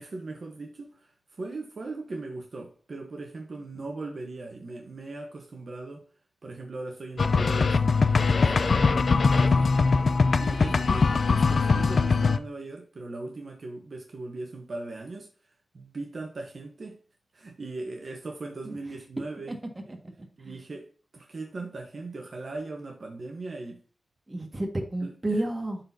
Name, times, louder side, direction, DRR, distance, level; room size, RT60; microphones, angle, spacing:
voice 1, 0.0-6.0 6.4-9.8 10.4-15.3 15.7-17.0 17.3-19.6 20.4-23.8 25.0-25.1, right 3 dB, 60° right, 1.1 m, -39 dB
sound 1, 7.2-12.4, left 4 dB, 65° left, 0.4 m, -22 dB
voice 2, 24.3-25.8, right 1 dB, 30° right, 1.8 m, -32 dB
11.5 x 4.1 x 2.8 m
wide cardioid pair, 80°, 0 cm